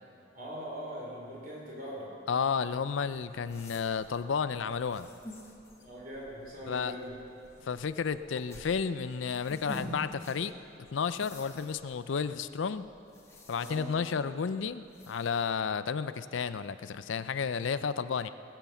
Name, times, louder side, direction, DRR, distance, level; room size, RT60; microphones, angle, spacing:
voice 1, 0.3-2.1 5.8-7.2 7.6-7.7 13.6-13.9, equal, 45° right, -4 dB, 4.6 m, -41 dB
voice 2, 2.3-5.1 6.7-6.9 7.7-10.5 10.9-12.8 13.5-18.3, left 6 dB, 75° left, 13 dB, 0.5 m, -32 dB
sound 1, 3.1-15.5, equal, 15° left, 1.4 m, -50 dB
20.5 x 8.0 x 7.1 m, 2.7 s
head